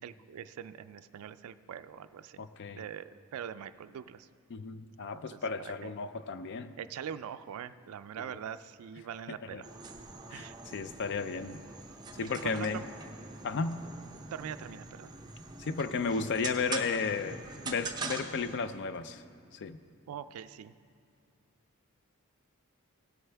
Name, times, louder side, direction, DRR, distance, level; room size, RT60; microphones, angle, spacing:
voice 1, 0.0-2.4 2.7-4.3 5.0-5.9 6.8-9.7 10.3-10.6 12.2-12.9 14.3-15.1 20.1-20.7, right 8 dB, 70° right, 13 dB, 0.3 m, -43 dB
voice 2, 2.4-2.8 4.5-6.7 8.2-8.4 9.3-9.6 10.3-11.6 12.2-12.8 13.4-13.8 15.6-19.2 19.5-19.8, left 5 dB, 50° left, 12 dB, 0.4 m, -34 dB
sound 1, 9.6-18.6, right 3 dB, 20° right, 0.6 m, -43 dB
17.5 x 7.9 x 3.3 m, 2.4 s
head